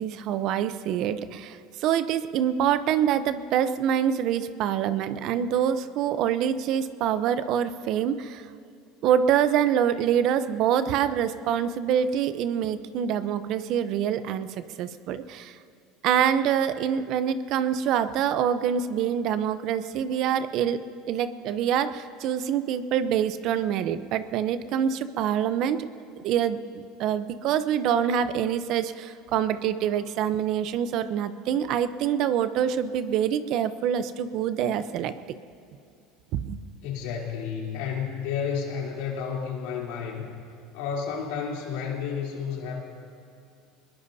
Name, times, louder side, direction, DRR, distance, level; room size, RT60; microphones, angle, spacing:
voice 1, 0.0-8.5 9.0-15.6 16.0-20.8 21.1-25.9 26.2-35.1 36.3-36.6, right 9 dB, 60° right, 12 dB, 0.8 m, -25 dB
voice 2, 36.8-40.3 40.7-42.8, left 6 dB, 80° left, -2 dB, 3.5 m, -31 dB
22.5 x 21.0 x 2.8 m, 2.6 s
supercardioid pair, 100°, 0 cm